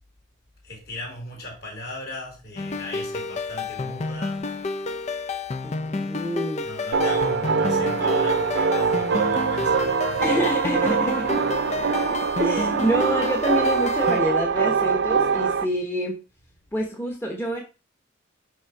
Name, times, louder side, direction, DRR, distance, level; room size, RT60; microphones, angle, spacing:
voice 1, 0.6-4.4 6.6-10.3 10.8-10.9, left 1 dB, 55° left, 3.3 m, -37 dB
sound 1, 2.6-14.2, left 3 dB, 35° left, 0.5 m, -30 dB
voice 2, 5.6-6.7 10.2-11.3 12.4-16.2 16.7-17.6, equal, 10° left, 1.0 m, -27 dB
sound 2, 6.9-15.6, right 5 dB, 55° right, 0.5 m, -23 dB
6.3 x 5.7 x 4.7 m
head